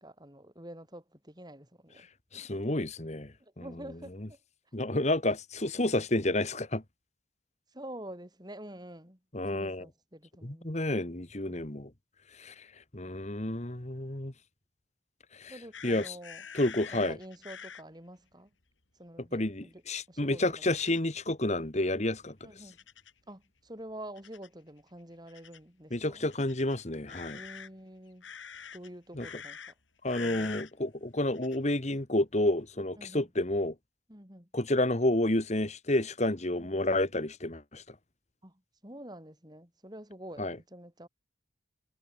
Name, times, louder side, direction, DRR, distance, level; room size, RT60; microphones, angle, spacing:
voice 1, 0.0-2.1 3.4-4.4 7.7-9.2 9.5-10.7 15.5-16.4 16.9-18.5 19.0-19.8 20.1-20.4 20.7-20.8 22.4-22.8 23.3-26.2 27.3-28.3 28.7-29.6 30.2-30.5 33.0-33.3 34.1-34.5 36.6-36.7 38.4-41.1, right 1 dB, 20° right, 6.2 m, -47 dB
voice 2, 2.3-3.6 4.7-6.8 9.3-9.9 10.4-11.9 12.4-12.7 12.9-14.3 15.3-15.5 15.8-16.2 16.5-17.2 19.3-22.5 25.9-27.4 29.2-29.3 30.0-33.8 34.5-38.0 40.4-40.6, left 1 dB, 35° left, 1.7 m, -30 dB
sound 1, 15.7-17.8 20.7-21.0 22.7-23.2 24.2-24.5 25.3-25.6 26.3-27.7 28.2-28.9 29.2-29.7 30.1-30.7 31.3-31.6, left 7 dB, 80° left, 3.9 m, -45 dB
head